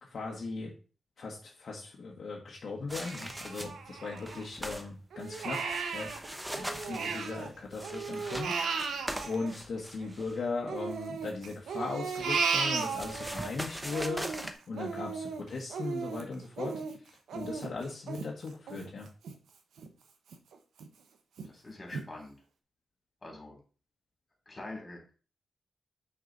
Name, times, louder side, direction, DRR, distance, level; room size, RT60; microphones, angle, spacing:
voice 1, 0.0-0.7 1.2-5.6 5.9-6.1 6.5-14.3 14.7-19.1, left 3 dB, 55° left, -2 dB, 1.5 m, -38 dB
sound 1, 2.9-3.9 4.2-4.9 5.2-10.4 11.7-14.5, equal, 5° right, 0.9 m, -41 dB
Crying sobbing, 3.0-4.7 5.1-7.5 7.8-10.2 10.7-13.5 13.9-19.4 19.8-19.9 20.3-20.9 21.4-21.5 21.9-22.1, right 5 dB, 90° right, 1.0 m, -35 dB
voice 2, 21.4-22.3 23.2-23.6 24.5-25.1, left 2 dB, 25° left, 1 dB, 3.3 m, -44 dB
6.3 x 5.9 x 4.0 m, 0.37 s
wide cardioid pair, 115°, 0 cm